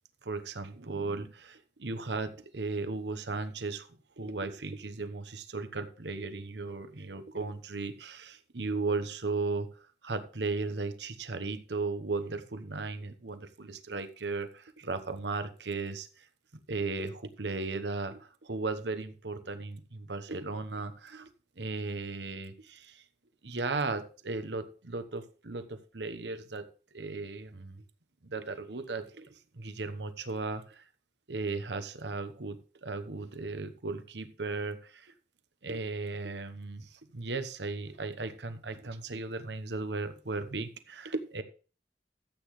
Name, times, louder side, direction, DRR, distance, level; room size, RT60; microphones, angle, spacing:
voice 1, 0.2-3.9 4.2-9.7 10.0-16.3 16.7-21.3 21.6-23.0 23.4-26.7 26.9-27.8 28.2-30.8 31.3-35.1 35.6-41.4, right 3 dB, 80° right, 10 dB, 1.1 m, -36 dB
13.5 x 8.5 x 3.2 m, 0.37 s
head